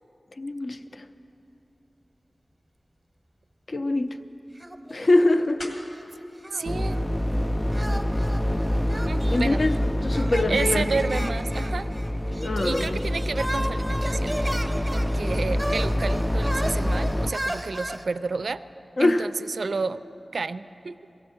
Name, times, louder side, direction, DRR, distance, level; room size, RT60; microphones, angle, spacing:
voice 1, 0.4-1.0 3.7-4.2 4.9-5.8 9.3-10.9 12.4-13.0 19.0-19.3, left 2 dB, 60° left, 8 dB, 0.6 m, -24 dB
sound 1, 2.6-7.8, left 1 dB, 85° left, 2.0 m, -49 dB
sound 2, 4.6-5.4 5.7-7.1 7.7-18.0, right 1 dB, 15° right, 0.8 m, -35 dB
voice 2, 6.5-7.0 9.1-9.6 10.1-11.9 12.4-14.4 14.9-18.6 19.0-20.0 20.3-21.0, right 4 dB, 85° right, 13 dB, 0.3 m, -31 dB
sound 3, 6.6-17.3, equal, 15° left, 0.4 m, -26 dB
17.5 x 15.5 x 4.5 m, 2.8 s
wide cardioid pair, 60°, 0 cm